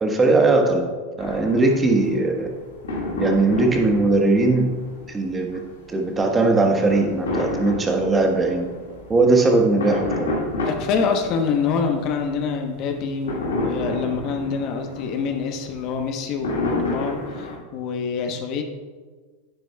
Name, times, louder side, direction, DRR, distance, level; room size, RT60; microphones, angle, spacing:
voice 1, 0.0-0.9 1.2-2.5 3.2-4.7 5.1-5.6 5.9-8.7 9.1-10.3, right 3 dB, 20° right, 3 dB, 1.3 m, -19 dB
sound 1, 1.2-17.6, left 2 dB, 80° left, 2.0 m, -31 dB
voice 2, 10.6-18.6, left 5 dB, 50° left, 4 dB, 1.0 m, -26 dB
10.0 x 9.3 x 2.3 m, 1.4 s
hypercardioid pair, 95°, 0 cm